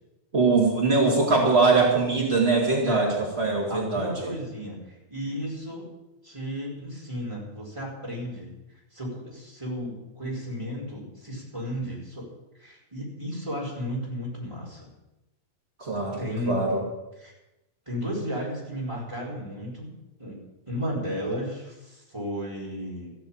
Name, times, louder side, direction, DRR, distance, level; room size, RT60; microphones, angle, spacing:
voice 1, 0.3-4.3 15.8-16.2 16.5-16.8, right 3 dB, 70° right, -2 dB, 0.6 m, -22 dB
voice 2, 2.8-3.2 3.7-5.9 6.2-8.5 8.9-12.3 12.5-14.9 16.2-16.6 17.2-17.3 17.9-19.9 20.2-20.4 20.7-23.1, equal, 5° right, -4 dB, 4.1 m, -34 dB
14.0 x 9.4 x 8.8 m, 0.98 s
omnidirectional pair, 5.6 m